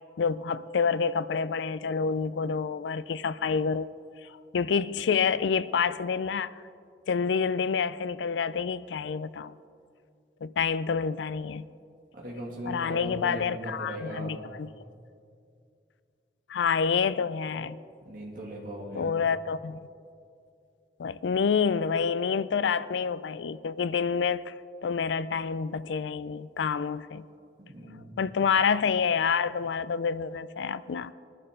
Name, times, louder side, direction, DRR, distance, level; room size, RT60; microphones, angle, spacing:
voice 1, 0.2-3.9 4.5-6.5 7.1-9.5 10.4-11.6 12.7-14.7 16.5-17.8 19.0-19.8 21.0-24.5 24.8-27.3 28.2-31.1, left 6 dB, 85° left, 0.4 m, -28 dB
voice 2, 12.1-14.6 18.0-19.2 27.6-28.3, right 1 dB, 50° right, 2.3 m, -39 dB
20.0 x 11.0 x 3.7 m
head